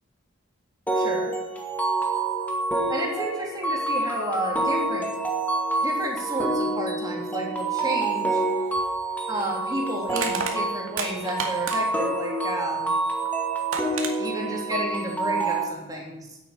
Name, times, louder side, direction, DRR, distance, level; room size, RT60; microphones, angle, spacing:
sound 1, 0.9-15.6, right 2 dB, 10° left, 2.1 m, -27 dB
voice 1, 0.9-1.3 2.9-5.1 5.8-8.4 9.3-12.9 14.2-16.4, right 1 dB, 15° right, -1 dB, 3.1 m, -31 dB
Crushing, 8.7-8.9 10.1-12.1 13.2-13.3 13.7-14.1, right 4 dB, 85° right, 2.2 m, -30 dB
10.5 x 8.4 x 8.9 m, 0.93 s
head